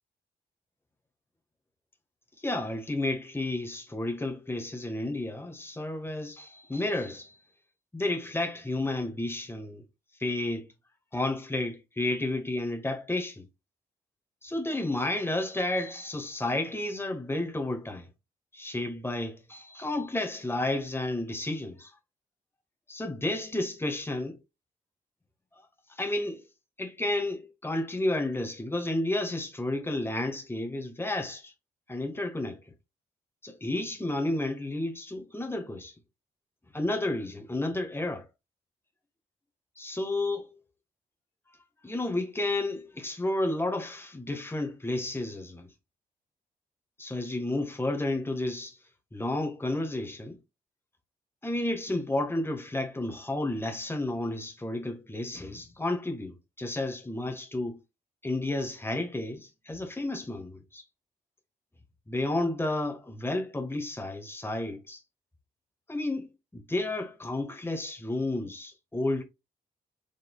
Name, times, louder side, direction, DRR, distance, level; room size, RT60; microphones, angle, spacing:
voice 1, 2.4-7.4 7.9-9.8 10.2-10.7 11.1-13.5 14.4-18.1 18.5-21.9 22.9-24.4 25.5-26.5 26.8-31.5 31.9-32.6 33.4-35.9 36.7-38.2 39.8-40.6 41.8-45.7 47.0-48.8 49.1-50.4 51.4-57.8 58.2-60.8 62.1-65.0 65.9-66.3 66.5-69.2, left 2 dB, 10° left, 1.4 m, -31 dB
5.1 x 3.8 x 2.3 m
hypercardioid pair, 45°, 18 cm